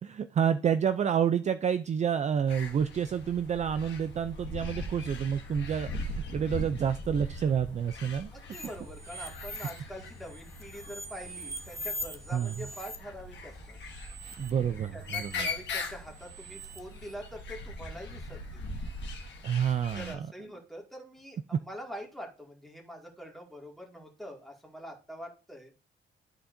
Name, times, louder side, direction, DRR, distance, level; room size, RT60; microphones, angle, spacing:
voice 1, 0.0-8.3 12.3-12.7 14.4-15.5 19.4-20.2, right 8 dB, 35° right, 12 dB, 0.4 m, -29 dB
sound 1, 2.5-20.1, left 2 dB, 65° left, 1.6 m, -40 dB
voice 2, 8.3-13.8 14.9-18.7 19.9-25.7, equal, ahead, 0 dB, 2.1 m, -45 dB
sound 2, 8.5-9.8 10.2-13.0 13.9-14.5 14.8-15.5 16.1-17.1, equal, 15° right, 1.0 m, -43 dB
12.5 x 4.2 x 2.6 m, 0.35 s
cardioid pair, 90°, 20 cm